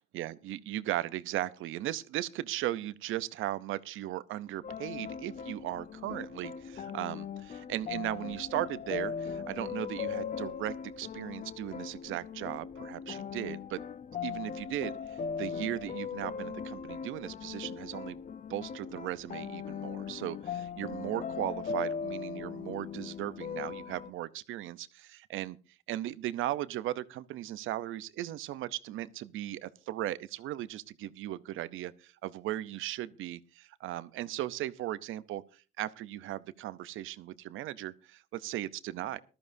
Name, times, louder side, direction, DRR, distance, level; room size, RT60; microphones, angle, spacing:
voice 1, 0.1-13.8 14.2-18.2 18.5-25.6 25.9-39.2, right 14 dB, 85° right, 0.6 m, -37 dB
sound 1, 4.6-24.1, left 6 dB, 40° left, 0.6 m, -39 dB
19.0 x 13.0 x 2.6 m
cardioid pair, 90°, 20 cm